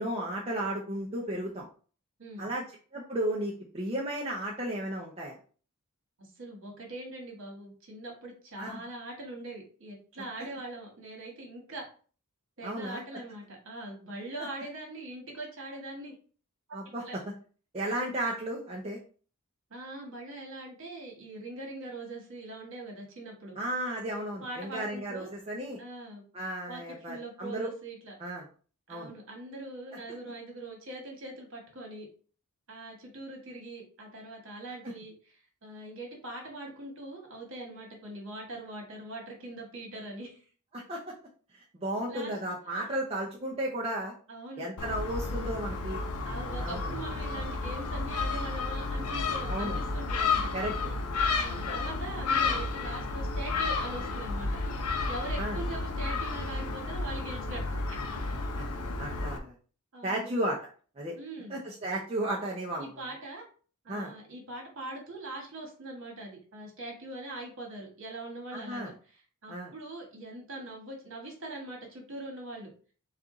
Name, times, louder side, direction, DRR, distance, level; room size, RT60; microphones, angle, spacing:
voice 1, 0.0-1.6 2.4-2.6 2.9-5.4 8.6-8.8 12.6-13.0 16.7-17.0 17.7-19.0 23.6-25.8 26.3-27.7 28.2-28.4 28.9-29.1 29.9-30.0 34.8-34.9 40.7-41.0 41.5-44.1 44.6-46.0 46.6-46.9 49.5-49.8 50.5-50.9 51.4-51.8 55.4-55.6 58.5-58.7 59.0-59.5 60.0-60.6 61.0-61.1 61.5-63.0 63.9-64.1 68.5-68.9 69.5-69.7, right 1 dB, 25° right, -3 dB, 0.5 m, -34 dB
voice 2, 6.2-11.8 12.6-16.1 17.0-17.2 19.7-23.6 24.4-25.3 25.8-26.2 26.7-28.1 28.9-32.1 32.7-40.4 42.1-42.3 44.3-44.7 45.2-45.5 46.2-50.5 51.3-54.5 55.0-57.6 57.9-58.0 59.9-60.3 61.2-61.6 62.8-63.4 63.8-72.7, right 2 dB, 60° right, 0 dB, 1.5 m, -42 dB
Gull seagull, 44.8-59.4, left 3 dB, 90° left, 0.6 m, -32 dB
4.3 x 2.4 x 3.8 m, 0.41 s
head